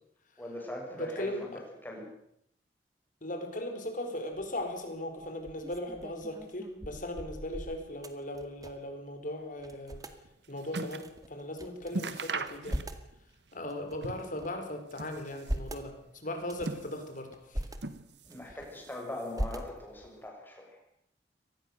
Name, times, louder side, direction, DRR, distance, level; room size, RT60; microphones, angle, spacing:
voice 1, 0.4-1.5 1.8-2.1 18.3-20.8, left 1 dB, 10° left, 0 dB, 6.8 m, -41 dB
voice 2, 0.9-1.6 3.2-10.0 10.5-12.8 13.5-17.7 18.5-18.6, left 1 dB, 50° left, 6 dB, 4.6 m, -38 dB
sound 1, 4.3-4.7 5.2-9.0 9.2-9.3 9.6-10.2 10.9-11.9 12.3-13.1 13.7-14.6 15.1-15.9 16.4-16.8 17.3-17.8 18.2-18.9 19.3-20.1, equal, 20° right, 2.0 m, -40 dB
sound 2, 10.0-11.2 11.5-11.6 11.9-13.2 13.5-14.4 14.8-15.7 16.3-17.3 17.8-18.5 18.8-19.5 20.2-20.3, right 3 dB, 75° right, 1.5 m, -40 dB
24.5 x 19.5 x 6.7 m, 0.77 s
head